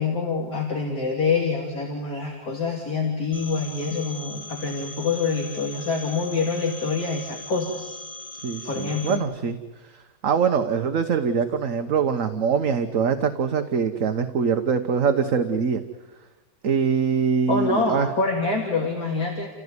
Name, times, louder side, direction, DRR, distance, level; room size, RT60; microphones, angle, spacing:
voice 1, 0.0-8.0 8.7-9.2 17.5-19.5, left 4 dB, 60° left, -2 dB, 3.6 m, -26 dB
Telephone, 3.3-9.2, left 2 dB, 30° left, 4.3 m, -40 dB
voice 2, 8.4-9.6 9.8-15.8 16.6-18.1, right 6 dB, 55° right, 7 dB, 1.4 m, -23 dB
30.0 x 16.0 x 9.7 m, 1.2 s
omnidirectional pair, 1.8 m